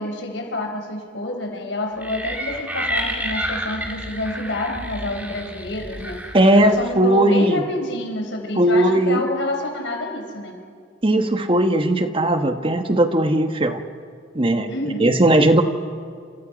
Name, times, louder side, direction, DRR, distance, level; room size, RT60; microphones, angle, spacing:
voice 1, 0.0-10.6 14.7-15.1, left 1 dB, 80° left, 3 dB, 4.5 m, -28 dB
sound 1, 2.0-6.8, equal, 10° right, 2.7 m, -30 dB
voice 2, 6.3-7.6 8.5-9.2 11.0-13.8 14.3-14.7 15.0-15.6, right 1 dB, 30° right, 7 dB, 1.3 m, -17 dB
29.5 x 27.5 x 5.2 m, 2.2 s
head